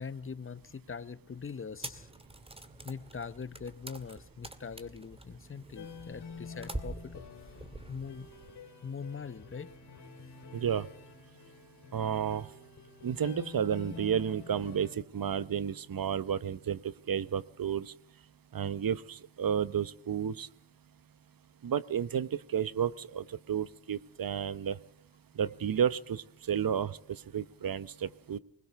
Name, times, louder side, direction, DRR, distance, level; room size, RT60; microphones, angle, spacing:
voice 1, 0.0-2.1 2.8-7.2 7.5-8.3 8.8-9.7, left 5 dB, 30° left, 15 dB, 1.0 m, -42 dB
sound 1, 1.8-8.5, right 1 dB, 15° right, 2.0 m, -46 dB
sound 2, 5.8-15.0, left 5 dB, 70° left, 3.6 m, -49 dB
voice 2, 10.5-10.9 11.9-12.5 13.0-16.8 17.1-17.9 18.5-20.5 21.6-24.8 25.4-27.0 27.3-28.4, right 8 dB, 55° right, 17 dB, 1.0 m, -32 dB
20.5 x 20.5 x 6.9 m, 0.65 s
cardioid pair, 70°, 40 cm